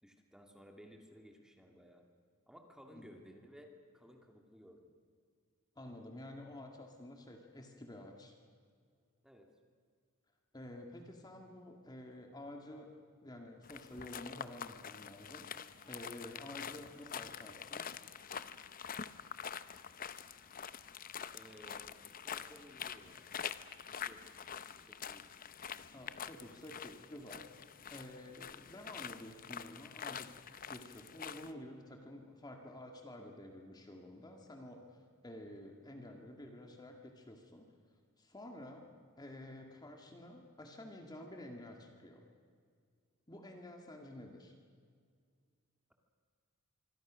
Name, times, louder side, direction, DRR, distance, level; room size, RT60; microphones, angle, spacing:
voice 1, 0.0-2.1 2.5-3.7 3.9-4.9 9.2-9.5 21.3-23.4 23.8-25.3, equal, 5° right, 3 dB, 2.2 m, -58 dB
voice 2, 5.8-8.4 10.5-12.9 13.2-17.9 25.9-27.5 27.9-30.3 30.7-37.7 38.2-38.9 39.2-42.2 43.3-44.5, left 1 dB, 20° left, 3 dB, 2.0 m, -50 dB
sound 1, 13.6-31.5, left 7 dB, 40° left, 0.7 m, -46 dB
25.5 x 24.5 x 6.3 m, 2.1 s
head